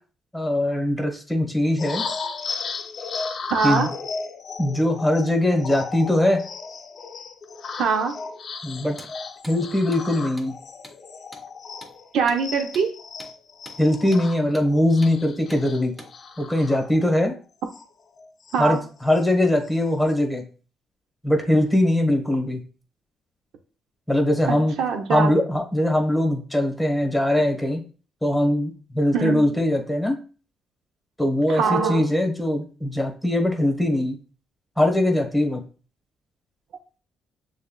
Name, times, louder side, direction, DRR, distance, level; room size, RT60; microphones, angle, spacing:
voice 1, 0.3-2.0 3.6-3.9 4.6-6.4 8.6-9.0 9.5-10.6 13.8-15.9 16.4-17.3 18.6-20.4 21.2-22.6 24.1-24.8 25.1-27.8 28.2-30.2 31.2-34.2 34.8-35.6, left 1 dB, 5° left, 1.4 m, -21 dB
sound 1, 1.8-12.1 12.4-17.3 17.7-17.8 18.1-19.3 19.7-20.1, left 4 dB, 50° left, 0.6 m, -35 dB
voice 2, 3.5-3.9 7.8-8.2 12.1-13.0 18.5-18.8 24.5-25.3 29.1-29.5 31.5-32.1, right 5 dB, 80° right, 0.7 m, -23 dB
Hammer, 8.9-9.1 9.4-9.6 9.9-10.1 10.4-10.5 10.8-11.0 11.3-11.5 11.8-12.0 12.3-12.4 12.7-12.9 13.2-13.3 13.6-13.8 14.1-14.3 14.5-14.7 15.0-15.2 15.5-15.6 16.0-16.1, right 1 dB, 15° right, 1.8 m, -44 dB
6.5 x 3.4 x 2.3 m
cardioid pair, 90°, 0 cm